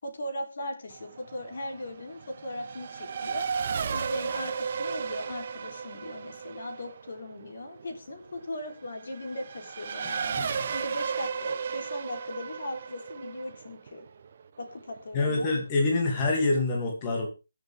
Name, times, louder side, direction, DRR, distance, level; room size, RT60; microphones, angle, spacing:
voice 1, 0.0-3.5 3.9-14.0 14.6-15.5, left 1 dB, 50° left, 4 dB, 3.8 m, -38 dB
Race car auto racing / Accelerating revving vroom, 0.9-15.0, right 6 dB, 40° right, 1.5 m, -35 dB
voice 2, 10.4-10.7 15.1-17.3, left 3 dB, 25° left, 0 dB, 2.8 m, -26 dB
21.5 x 7.3 x 3.7 m, 0.30 s
figure-of-eight pair, 150°, 0 cm